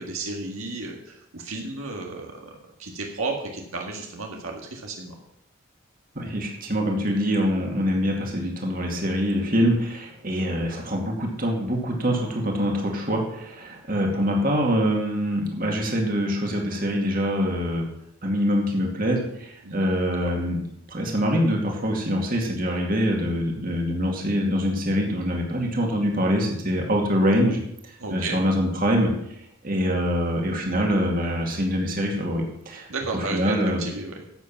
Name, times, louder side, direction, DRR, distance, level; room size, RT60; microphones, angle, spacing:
voice 1, 0.0-5.2 19.6-19.9 20.2-20.3 28.0-28.4 32.9-34.2, right 3 dB, 75° right, 1 dB, 1.8 m, -33 dB
voice 2, 6.2-17.9 18.2-20.6 20.9-29.1 29.6-32.9 33.1-33.8, equal, 40° right, 0 dB, 2.4 m, -24 dB
12.5 x 8.2 x 5.9 m, 0.79 s
head